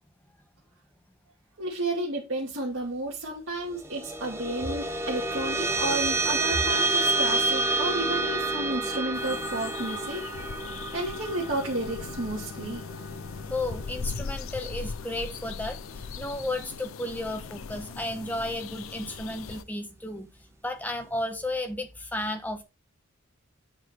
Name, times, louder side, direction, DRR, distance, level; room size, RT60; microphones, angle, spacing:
voice 1, 1.6-10.3 10.9-12.8, right 1 dB, 60° right, 2.4 m, -32 dB
sound 1, 3.7-14.5, right 2 dB, 10° right, 1.0 m, -29 dB
sound 2, 9.1-19.6, left 5 dB, 70° left, 0.6 m, -39 dB
voice 2, 13.5-20.3 20.6-22.6, left 1 dB, 10° left, 1.3 m, -33 dB
8.9 x 4.9 x 4.4 m
head